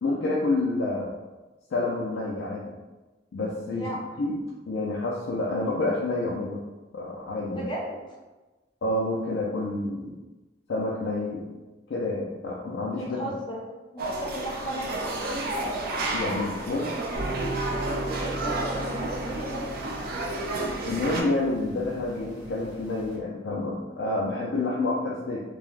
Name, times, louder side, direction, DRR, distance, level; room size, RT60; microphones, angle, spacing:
voice 1, 0.0-1.1 1.7-2.7 3.3-3.9 4.2-4.3 4.7-6.6 6.9-7.7 8.8-10.1 10.7-11.5 11.9-13.3 16.1-16.9 20.9-25.4, left 2 dB, 85° left, -4 dB, 0.4 m, -28 dB
voice 2, 7.5-8.0 12.9-15.2 18.2-19.7, equal, 25° left, -2 dB, 0.5 m, -35 dB
sound 1, 14.0-21.2, right 2 dB, 55° right, 0.4 m, -31 dB
sound 2, 17.2-23.2, right 2 dB, 90° right, 0.8 m, -37 dB
3.2 x 2.2 x 2.4 m, 1.2 s
head